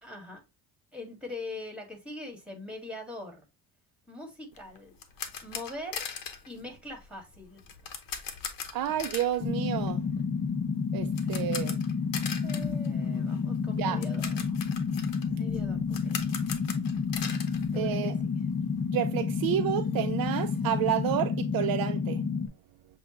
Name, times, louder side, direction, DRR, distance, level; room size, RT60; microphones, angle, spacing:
voice 1, 0.0-0.4 0.9-3.4 4.1-4.9 5.4-6.0 6.5-8.0 11.1-11.5 12.4-14.4 15.3-16.3 17.7-18.1, left 2 dB, 5° right, 1.8 m, -42 dB
sound 1, 4.5-18.5 18.8-18.9 19.3-19.4 19.7-21.2, left 7 dB, 55° left, 1.0 m, -41 dB
voice 2, 8.7-10.0 10.9-11.8 13.8-14.0 17.8-18.1 18.9-22.2, right 11 dB, 60° right, 0.5 m, -30 dB
sound 2, 9.4-22.5, left 5 dB, 25° left, 0.4 m, -30 dB
6.9 x 2.3 x 2.9 m
cardioid pair, 105°, 41 cm